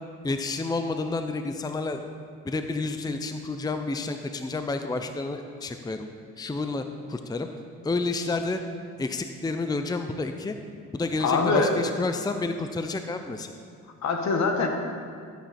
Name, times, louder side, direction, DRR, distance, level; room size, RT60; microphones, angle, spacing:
voice 1, 0.2-2.0 2.4-6.1 6.4-6.8 7.1-7.5 7.8-8.6 9.0-10.6 10.9-13.5, left 3 dB, 15° left, 7 dB, 0.6 m, -30 dB
voice 2, 11.2-11.7 14.0-14.7, left 4 dB, 65° left, 3 dB, 1.6 m, -23 dB
13.5 x 9.1 x 4.3 m, 2.2 s
cardioid pair, 90°, 30 cm